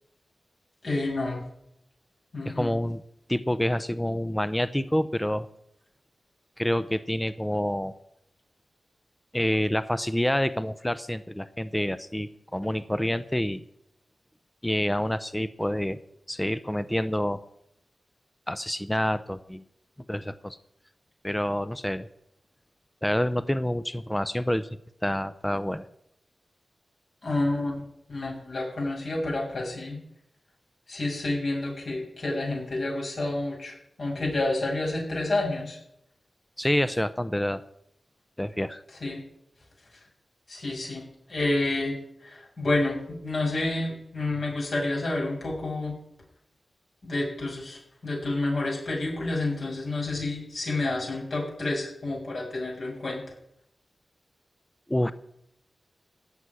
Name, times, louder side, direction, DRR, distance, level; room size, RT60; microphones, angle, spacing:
voice 1, 0.8-1.4 2.3-2.7 27.2-27.8 28.1-30.0 30.9-35.8 39.0-39.2 40.5-41.0 41.3-41.9 42.2-43.0 43.2-45.9 47.0-53.2, left 2 dB, 65° left, -2 dB, 6.6 m, -29 dB
voice 2, 2.5-3.0 3.3-5.5 6.6-7.9 9.3-13.6 14.6-16.0 16.3-17.4 18.5-19.6 20.1-20.6 21.2-22.1 23.0-24.7 25.0-25.8 36.6-37.6 38.4-38.8 54.9-55.1, left 1 dB, 10° left, 13 dB, 0.6 m, -27 dB
16.5 x 6.2 x 9.7 m, 0.78 s
wide cardioid pair, 75°, 0 cm